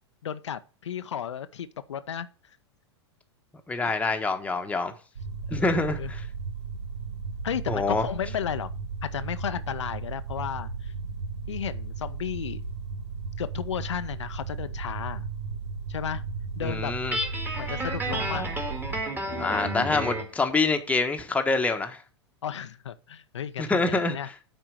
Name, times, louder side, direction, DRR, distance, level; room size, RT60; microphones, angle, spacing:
voice 1, 0.2-2.3 3.8-3.9 5.5-5.7 6.0-6.1 7.4-8.7 9.0-10.9 11.5-12.6 13.4-15.2 15.9-16.2 16.6-16.9 17.6-18.5 22.4-24.3, left 9 dB, 75° left, 0.6 m, -33 dB
voice 2, 3.7-4.9 5.5-6.3 7.7-8.1 16.6-17.2 19.4-22.0 23.6-24.2, left 3 dB, 10° left, 1.2 m, -26 dB
sound 1, 5.2-19.1, right 4 dB, 75° right, 1.2 m, -35 dB
Guitar, 17.1-20.3, right 1 dB, 15° right, 2.1 m, -31 dB
9.1 x 4.5 x 6.3 m
hypercardioid pair, 100°, 15 cm